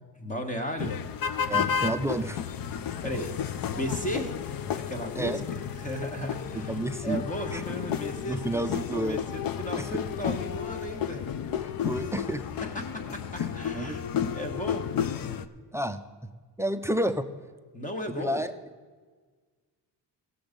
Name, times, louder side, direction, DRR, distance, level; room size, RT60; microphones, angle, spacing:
voice 1, 0.2-1.0 3.0-3.3 3.7-4.4 4.7-5.4 5.7-11.2 12.7-13.0 13.3-14.0 14.3-14.9 17.7-18.4, equal, 20° left, 5 dB, 1.4 m, -35 dB
sound 1, 0.8-15.4, left 8 dB, 55° left, 0.6 m, -32 dB
voice 2, 1.5-2.4 5.2-5.4 6.5-7.2 7.5-7.6 8.3-9.2 9.8-9.9 11.8-12.4 13.7-14.0 15.7-16.0 16.6-17.2 18.2-18.5, right 1 dB, 5° right, 10 dB, 0.3 m, -30 dB
16.5 x 7.1 x 5.2 m, 1.5 s
cardioid pair, 135°, 42 cm